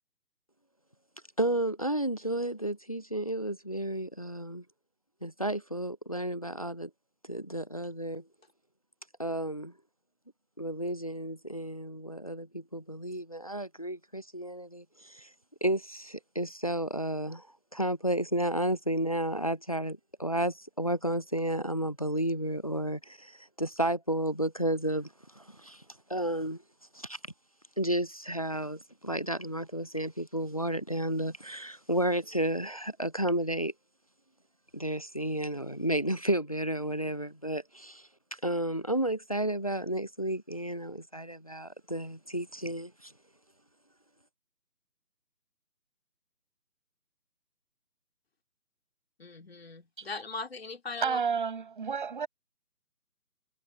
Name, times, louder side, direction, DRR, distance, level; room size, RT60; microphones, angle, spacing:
voice 1, 1.4-4.6 5.2-6.9 7.3-8.2 9.2-9.7 10.6-15.3 15.6-17.5 17.7-25.8 26.1-26.6 26.9-27.2 27.8-33.7 34.7-43.1, right 1 dB, 25° left, 0.9 m, -32 dB
voice 2, 49.2-51.2, left 4 dB, 40° left, 3.5 m, -39 dB
voice 3, 51.0-52.3, right 6 dB, 30° right, 6.8 m, -31 dB
figure-of-eight pair, 160°, 47 cm